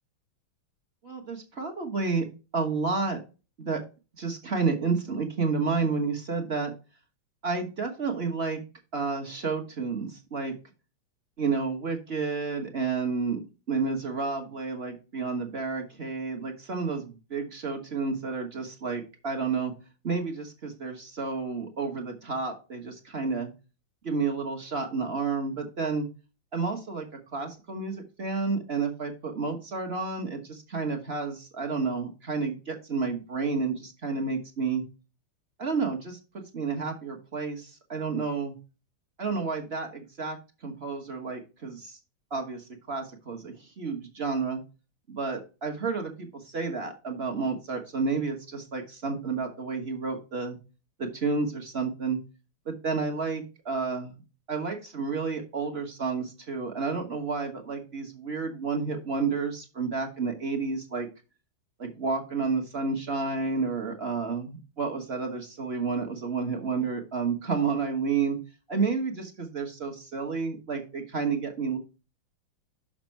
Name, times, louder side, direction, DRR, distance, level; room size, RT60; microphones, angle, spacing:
voice 1, 1.0-2.3 2.5-3.2 3.6-3.8 4.2-6.7 7.4-8.6 8.9-10.5 11.4-13.4 13.7-19.7 20.0-23.5 24.0-26.1 26.5-27.1 27.3-34.8 35.6-38.5 39.2-40.4 40.6-42.0 42.3-44.6 45.1-50.6 51.0-52.2 52.7-54.1 54.5-61.1 61.8-68.4 68.7-71.8, right 4 dB, 35° right, 3 dB, 1.2 m, -30 dB
6.3 x 6.0 x 4.4 m, 0.31 s
omnidirectional pair, 2.3 m